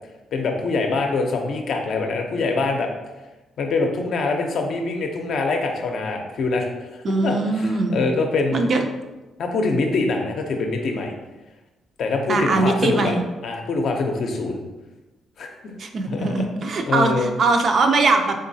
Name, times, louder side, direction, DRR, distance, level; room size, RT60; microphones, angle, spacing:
voice 1, 0.3-2.9 3.6-8.6 9.4-11.1 12.0-13.1 13.4-14.6 15.4-15.7 16.0-16.4 16.9-17.3, left 3 dB, 65° left, 3 dB, 0.5 m, -24 dB
voice 2, 7.0-8.0 8.5-8.8 12.3-13.2 15.8-18.3, right 3 dB, 50° right, 5 dB, 0.4 m, -21 dB
3.8 x 3.0 x 2.7 m, 1.1 s
cardioid pair, 90°, 0 cm